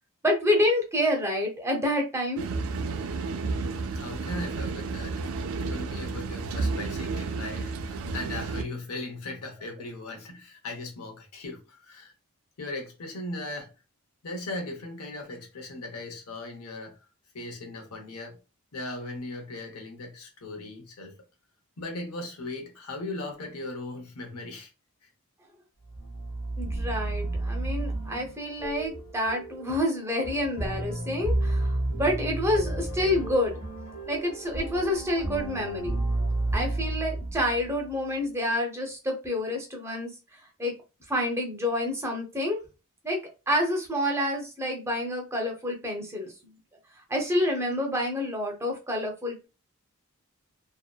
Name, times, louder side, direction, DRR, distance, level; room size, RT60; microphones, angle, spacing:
voice 1, 0.2-2.4 26.6-33.6 34.1-35.9 36.5-40.1 40.6-40.7 41.1-42.6 43.0-46.5 47.1-49.5, left 1 dB, 10° right, 0.5 m, -28 dB
sound 1, 2.4-8.6, right 4 dB, 70° right, 0.3 m, -31 dB
voice 2, 3.9-5.3 5.6-12.1 12.6-13.7 14.2-17.0 17.3-18.4 18.7-21.2 21.8-24.7 25.0-25.1, left 2 dB, 85° left, 0.8 m, -38 dB
sound 2, 25.8-37.9, right 2 dB, 30° left, 0.8 m, -31 dB
2.7 x 2.1 x 2.2 m
head